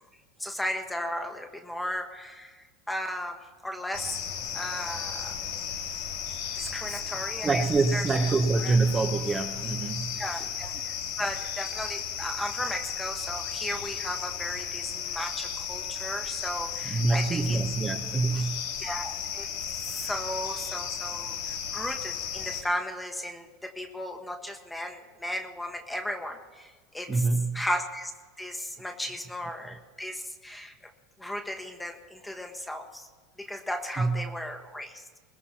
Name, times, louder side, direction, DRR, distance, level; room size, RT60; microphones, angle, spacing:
voice 1, 0.4-3.4 3.6-4.2 4.5-5.4 6.5-7.6 7.9-8.1 8.6-8.7 10.2-17.6 18.8-27.2 27.5-28.1 28.4-30.9 31.2-33.1 33.4-35.1, left 1 dB, 5° left, 4 dB, 1.4 m, -35 dB
sound 1, 3.9-22.6, left 8 dB, 80° left, 1.8 m, -35 dB
voice 2, 7.4-10.5 16.8-18.8 27.1-27.6 34.0-34.3, right 3 dB, 20° right, 2 dB, 0.9 m, -26 dB
21.5 x 20.0 x 2.9 m, 1.4 s
supercardioid pair, 145°, 0 cm